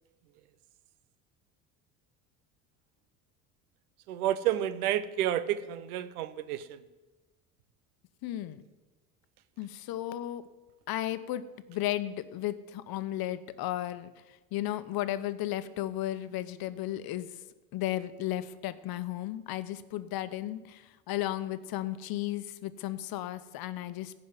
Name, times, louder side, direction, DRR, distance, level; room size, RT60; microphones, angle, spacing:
voice 1, 4.1-6.8, right 11 dB, 85° right, 14 dB, 0.9 m, -30 dB
voice 2, 8.2-8.6 9.6-10.5 10.9-11.4 11.7-14.1 14.5-17.3 17.7-24.1, left 14 dB, 55° left, 13 dB, 1.0 m, -34 dB
15.0 x 5.6 x 9.8 m, 1.2 s
hypercardioid pair, 75°, 43 cm